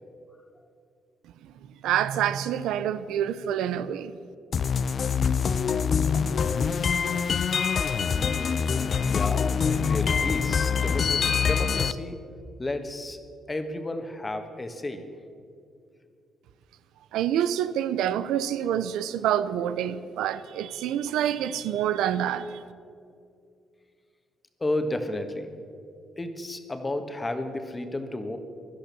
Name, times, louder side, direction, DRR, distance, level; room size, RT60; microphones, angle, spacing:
voice 1, 1.8-4.2 17.1-22.6, right 10 dB, 90° right, 0.6 m, -27 dB
sound 1, 4.5-11.9, left 6 dB, 50° left, 0.6 m, -25 dB
voice 2, 9.1-12.2 12.6-13.2 13.5-15.0 24.6-25.5 26.2-28.4, left 1 dB, 20° left, 1.6 m, -32 dB
17.0 x 11.5 x 6.9 m
cardioid pair, 90°, 0 cm